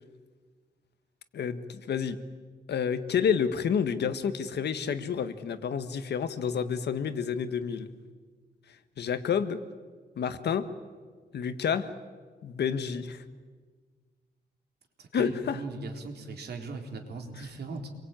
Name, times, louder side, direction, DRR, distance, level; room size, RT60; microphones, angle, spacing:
voice 1, 1.3-2.2 2.7-7.9 9.0-9.6 10.2-10.7 11.3-11.9 12.4-13.2 15.1-15.6, left 7 dB, 80° left, 10 dB, 1.6 m, -29 dB
voice 2, 15.0-17.9, right 3 dB, 75° right, 3 dB, 3.7 m, -39 dB
27.5 x 22.5 x 9.1 m, 1.5 s
wide cardioid pair, 170°, 17 cm